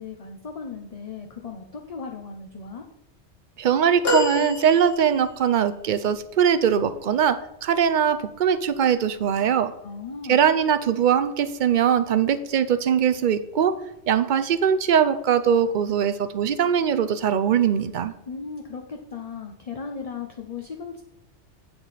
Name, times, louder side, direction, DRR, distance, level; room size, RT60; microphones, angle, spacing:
voice 1, 0.0-2.8 9.8-10.5 18.3-21.0, left 5 dB, 40° left, 3 dB, 0.7 m, -36 dB
voice 2, 3.6-9.7 10.3-13.7 14.1-18.1, right 8 dB, 55° right, 13 dB, 0.6 m, -21 dB
sound 1, 4.0-5.5 6.2-6.3, left 2 dB, 55° left, 1.7 m, -27 dB
8.6 x 6.9 x 4.1 m, 0.82 s
omnidirectional pair, 1.2 m